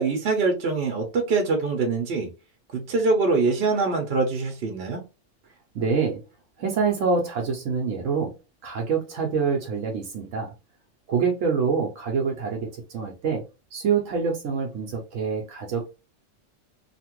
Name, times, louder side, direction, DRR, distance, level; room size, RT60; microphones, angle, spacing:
voice 1, 0.0-2.3 2.7-5.0, right 3 dB, 60° right, 0.9 m, -24 dB
voice 2, 5.7-6.2 6.6-8.3 8.6-10.5 11.1-13.4 13.7-15.9, right 5 dB, 85° right, 1.0 m, -26 dB
2.8 x 2.4 x 2.9 m
omnidirectional pair, 1.3 m